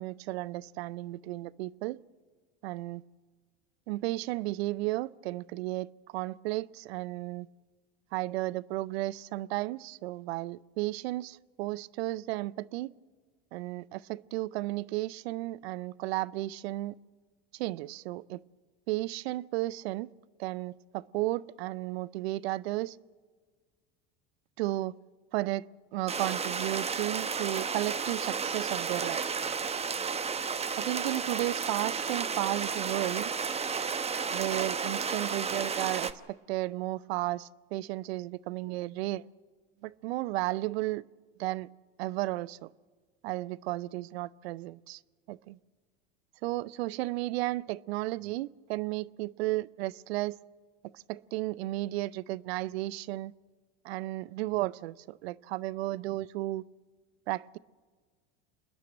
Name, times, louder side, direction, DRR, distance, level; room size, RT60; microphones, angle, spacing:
voice 1, 0.0-2.0 2.6-3.0 3.9-7.5 8.1-12.9 13.5-17.0 17.5-18.4 18.9-20.1 20.4-23.0 24.6-25.0 25.3-25.7 25.9-29.2 30.8-33.3 34.3-39.3 39.8-41.0 41.4-41.7 42.0-42.7 43.2-45.0 45.3-45.6 46.4-50.4 50.9-53.3 53.8-56.6 57.3-57.6, right 18 dB, 75° right, 0.6 m, -33 dB
sound 1, 26.1-36.1, right 5 dB, 20° right, 0.9 m, -32 dB
28.0 x 10.5 x 8.9 m
hypercardioid pair, 90°, 31 cm